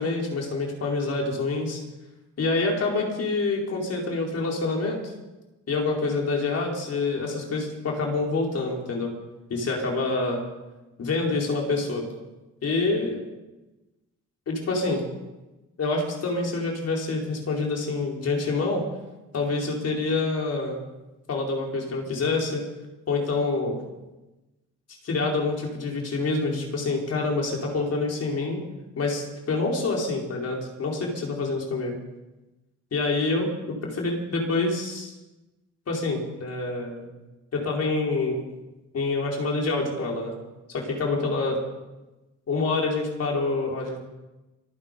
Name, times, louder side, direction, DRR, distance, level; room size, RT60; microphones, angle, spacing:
voice 1, 0.0-1.8 2.4-5.1 5.7-9.1 9.5-10.4 11.0-12.0 12.6-13.2 14.5-15.0 15.8-18.8 19.3-20.8 21.3-22.6 23.1-23.8 25.0-28.6 29.0-32.0 32.9-35.1 35.9-37.1 37.5-38.4 38.9-40.3 40.7-41.6 42.5-44.0, left 3 dB, 55° left, -1 dB, 4.7 m, -26 dB
26.0 x 9.7 x 5.3 m, 1.1 s
cardioid pair, 90°, 30 cm